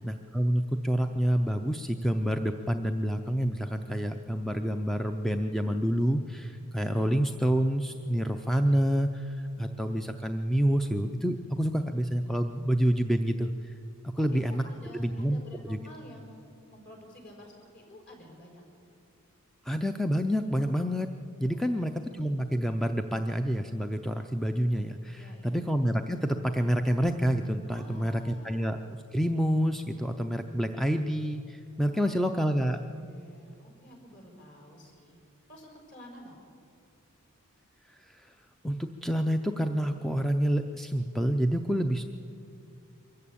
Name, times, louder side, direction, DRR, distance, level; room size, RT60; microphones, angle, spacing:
voice 1, 0.0-13.7 14.2-14.6 14.9-15.4 15.7-15.8 19.6-21.1 21.4-28.8 29.1-32.8 38.1-38.3 38.6-42.0, equal, ahead, 6 dB, 0.5 m, -28 dB
voice 2, 14.2-18.6 21.5-22.1 25.1-25.6 27.7-28.5 31.8-32.2 32.8-35.2 35.5-36.4, left 1 dB, 50° left, 0 dB, 5.3 m, -50 dB
23.5 x 14.5 x 8.6 m, 2.5 s
head